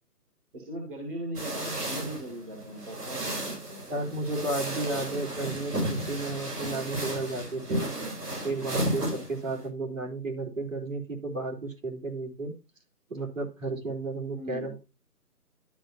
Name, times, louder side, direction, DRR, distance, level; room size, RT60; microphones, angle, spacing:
voice 1, 0.5-3.9 14.3-14.7, right 1 dB, 35° right, 1 dB, 2.5 m, -39 dB
sound 1, 1.3-9.7, right 1 dB, 75° right, 6.2 m, -33 dB
voice 2, 3.9-7.9 8.4-12.5 13.1-14.8, right 2 dB, 55° right, 1 dB, 3.5 m, -33 dB
13.0 x 6.4 x 2.7 m, 0.28 s
hypercardioid pair, 180°, 47 cm